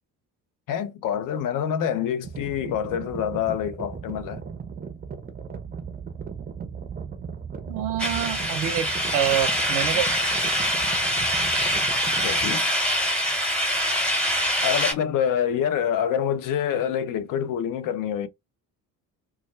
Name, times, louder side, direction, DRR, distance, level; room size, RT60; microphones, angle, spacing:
voice 1, 0.7-4.4 12.2-12.7 14.6-18.3, left 9 dB, 45° left, 0.5 m, -26 dB
sound 1, 2.2-12.6, right 6 dB, 20° right, 0.6 m, -37 dB
voice 2, 7.7-10.1, right 11 dB, 75° right, 0.6 m, -26 dB
sound 2, 8.0-14.9, equal, ahead, 1.1 m, -24 dB
2.2 x 2.0 x 3.0 m
figure-of-eight pair, 40°, 49 cm